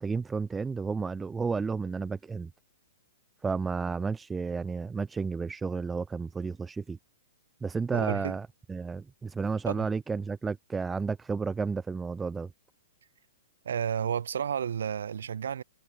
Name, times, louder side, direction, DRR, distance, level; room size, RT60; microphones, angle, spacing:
voice 1, 0.0-2.5 3.4-7.0 7.6-12.5, right 4 dB, 10° right, 0.6 m, -32 dB
voice 2, 7.9-8.4 9.7-9.9 13.6-15.6, right 8 dB, 85° right, 1.9 m, -31 dB
hypercardioid pair, 145°, 0 cm